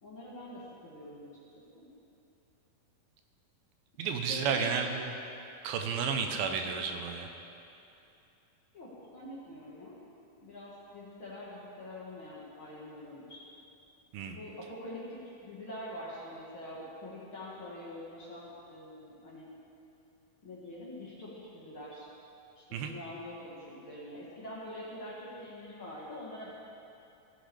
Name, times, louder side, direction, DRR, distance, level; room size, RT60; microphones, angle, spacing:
voice 1, 0.0-1.3 1.8-1.9 4.0-4.7 8.7-10.0 10.4-13.4 14.3-19.5 20.4-22.1 22.6-26.5, left 1 dB, 50° left, -7 dB, 1.8 m, -45 dB
voice 2, 4.0-5.1 5.6-7.3 14.1-14.4 22.7-22.9, right 6 dB, 85° right, 4 dB, 2.6 m, -32 dB
16.0 x 10.0 x 3.4 m, 2.8 s
omnidirectional pair, 4.1 m